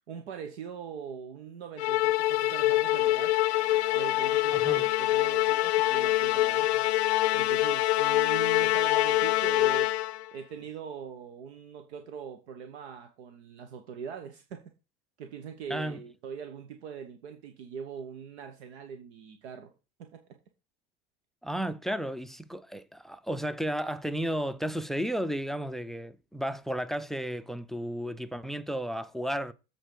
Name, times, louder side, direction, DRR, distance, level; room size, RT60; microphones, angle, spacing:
voice 1, 0.1-3.4 3.9-6.9 7.3-9.9 10.3-14.7 15.2-19.7 20.0-20.2, right 7 dB, 85° right, 1.1 m, -42 dB
Musical instrument, 1.8-10.3, left 16 dB, 85° left, 0.6 m, -25 dB
voice 2, 4.5-4.9 15.7-16.0 21.4-29.5, equal, ahead, 0.3 m, -33 dB
7.8 x 4.0 x 6.6 m
supercardioid pair, 100°, 32 cm